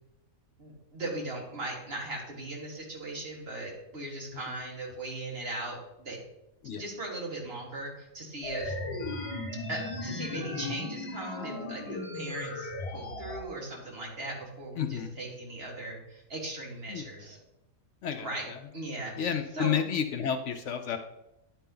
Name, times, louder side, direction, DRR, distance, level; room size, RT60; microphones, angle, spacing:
voice 1, 0.6-6.2 6.7-8.8 9.7-17.4 18.2-18.4 18.7-19.3 19.5-19.7, right 2 dB, 45° right, -1 dB, 1.8 m, -38 dB
sound 1, 8.4-13.4, left 2 dB, 25° left, 1.1 m, -36 dB
voice 2, 14.8-15.1 16.9-17.1 18.0-18.6 19.2-21.0, left 8 dB, 65° left, 7 dB, 0.8 m, -31 dB
9.9 x 4.2 x 3.8 m, 0.88 s
omnidirectional pair, 1.5 m